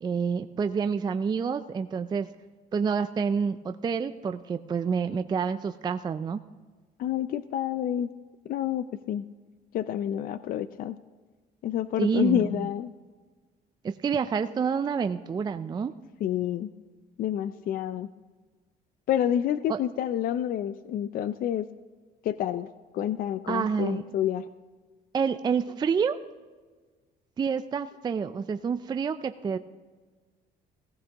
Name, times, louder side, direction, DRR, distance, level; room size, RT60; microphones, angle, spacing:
voice 1, 0.0-2.3 2.7-6.4 12.0-12.7 13.8-15.9 19.7-19.8 23.5-24.0 25.1-26.2 27.4-29.6, right 6 dB, 25° right, 10 dB, 0.4 m, -28 dB
voice 2, 7.0-8.1 8.5-9.2 9.7-11.0 11.6-12.9 16.2-16.7 17.2-18.1 19.1-21.7 22.2-22.7 22.9-24.4, left 10 dB, 60° left, 14 dB, 0.4 m, -28 dB
16.5 x 15.5 x 2.9 m, 1.4 s
cardioid pair, 110°, 17 cm